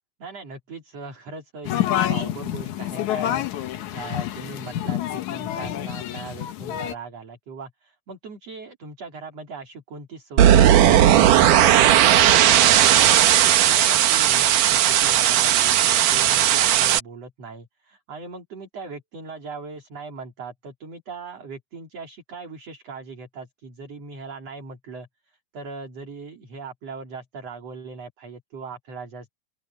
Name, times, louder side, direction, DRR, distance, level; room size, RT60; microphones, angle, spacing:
voice 1, 0.2-29.3, right 4 dB, 45° right, 4.4 m, -39 dB
sound 1, 1.6-6.9, left 12 dB, 65° left, 2.2 m, -27 dB
sound 2, 10.4-17.0, right 11 dB, 65° right, 2.6 m, -16 dB
open air
omnidirectional pair, 4.3 m